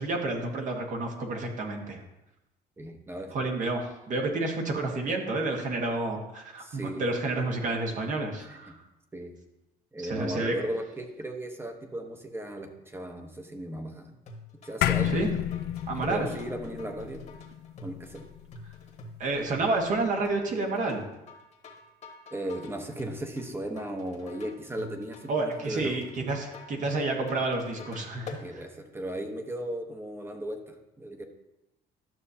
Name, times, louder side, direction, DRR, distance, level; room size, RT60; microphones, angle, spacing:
voice 1, 0.0-2.0 3.3-8.7 10.0-10.5 15.0-15.3 15.9-16.3 19.2-21.0 25.3-28.6, right 2 dB, 50° right, 2 dB, 1.4 m, -30 dB
voice 2, 2.8-3.3 6.6-7.1 8.5-8.7 9.1-9.3 9.9-14.2 14.6-15.2 16.0-17.2 17.8-18.2 22.3-26.0 28.4-31.2, right 1 dB, 15° right, 5 dB, 1.0 m, -36 dB
sound 1, 14.3-28.5, left 3 dB, 45° left, 1.4 m, -47 dB
sound 2, 14.8-19.4, left 12 dB, 70° left, 0.4 m, -31 dB
12.0 x 6.5 x 2.8 m, 0.93 s
cardioid pair, 110°, 17 cm